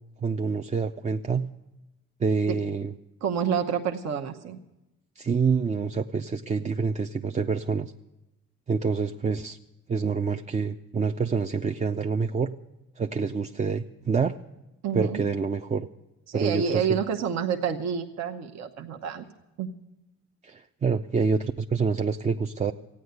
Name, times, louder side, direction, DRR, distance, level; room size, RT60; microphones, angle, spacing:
voice 1, 0.2-1.5 2.2-2.9 5.2-7.9 8.7-9.6 9.9-12.5 13.0-14.4 14.9-15.9 16.3-17.0 20.4-22.7, right 5 dB, 25° right, 5 dB, 0.4 m, -27 dB
voice 2, 3.2-4.6 14.8-15.2 16.3-19.2 19.6-19.7, right 7 dB, 60° right, 4 dB, 0.9 m, -28 dB
14.5 x 9.5 x 7.9 m, 0.95 s
cardioid pair, 90°, 30 cm